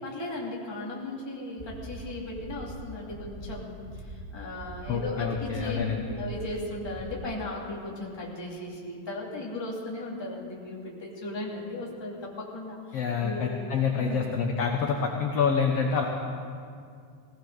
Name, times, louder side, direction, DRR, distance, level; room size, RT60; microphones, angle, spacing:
voice 1, 0.0-5.8 6.1-13.6 14.0-14.3, left 2 dB, 10° left, -4 dB, 1.8 m, -37 dB
sound 1, 1.6-1.9 2.3-2.7 3.1-3.4 3.8-4.2 4.6-4.9 5.3-5.7 6.1-6.4 6.8-7.2, right 1 dB, 20° right, 1.9 m, -42 dB
voice 2, 4.9-6.0 12.9-16.0, left 6 dB, 65° left, 1 dB, 1.6 m, -27 dB
18.5 x 17.0 x 3.9 m, 2.2 s
omnidirectional pair, 3.9 m